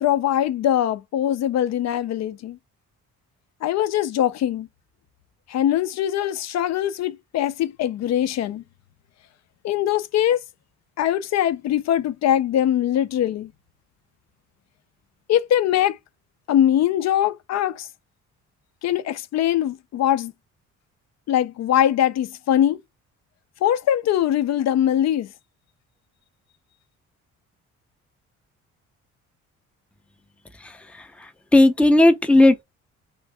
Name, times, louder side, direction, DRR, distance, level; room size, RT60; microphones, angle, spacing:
voice 1, 0.0-2.6 3.6-4.7 5.5-8.6 9.6-10.4 11.0-13.5 15.3-16.0 16.5-17.9 18.8-20.3 21.3-22.8 23.6-25.3, left 11 dB, 60° left, 0.5 m, -22 dB
voice 2, 30.6-32.6, left 1 dB, 5° left, 0.5 m, -17 dB
3.2 x 2.6 x 3.3 m
cardioid pair, 90°, 30 cm